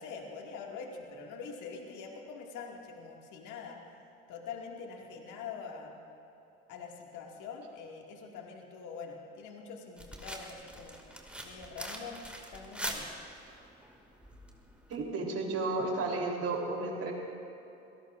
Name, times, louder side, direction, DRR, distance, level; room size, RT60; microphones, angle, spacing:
voice 1, 0.0-3.8 4.3-6.0 6.7-11.0 11.4-12.2 12.5-13.1, left 5 dB, 60° left, 0 dB, 2.3 m, -44 dB
sound 1, 10.0-15.0, right 1 dB, 5° right, 2.3 m, -43 dB
voice 2, 14.9-17.1, right 3 dB, 45° right, 0 dB, 3.6 m, -32 dB
26.5 x 17.5 x 2.6 m, 2.9 s
hypercardioid pair, 70°, 35 cm